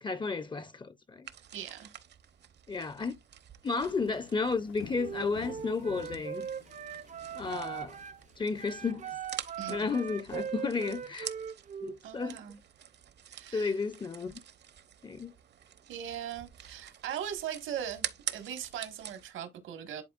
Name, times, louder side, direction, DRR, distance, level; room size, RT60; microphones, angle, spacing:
voice 1, 0.0-1.3 2.7-3.2 3.6-6.5 7.3-8.0 8.4-9.1 9.7-11.3 11.8-12.4 13.5-14.4 15.0-15.3, left 4 dB, 25° left, 0.5 m, -33 dB
sound 1, 1.2-19.3, right 9 dB, 60° right, 0.9 m, -46 dB
voice 2, 1.5-1.9 9.6-9.9 12.0-12.6 13.3-13.7 15.9-18.1 18.3-20.0, right 9 dB, 80° right, 1.6 m, -39 dB
sound 2, 3.8-8.8, left 8 dB, 75° left, 0.9 m, -52 dB
Wind instrument woodwind instrument, 4.9-8.2 8.6-12.0, right 8 dB, 40° right, 0.5 m, -40 dB
11.0 x 4.1 x 2.4 m
cardioid pair, 90°, 20 cm